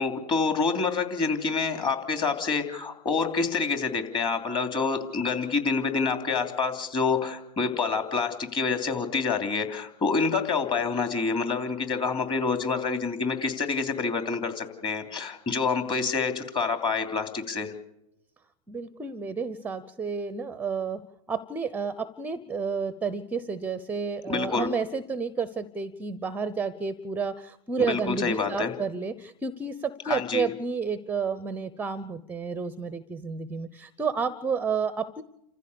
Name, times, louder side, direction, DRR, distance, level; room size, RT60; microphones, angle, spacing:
voice 1, 0.0-17.7 24.3-24.7 27.8-28.7 30.1-30.5, left 4 dB, 20° left, 6 dB, 3.1 m, -27 dB
voice 2, 18.7-21.0 21.3-35.2, right 5 dB, 10° right, 14 dB, 0.7 m, -31 dB
29.0 x 15.0 x 6.9 m, 0.84 s
hypercardioid pair, 125°, 21 cm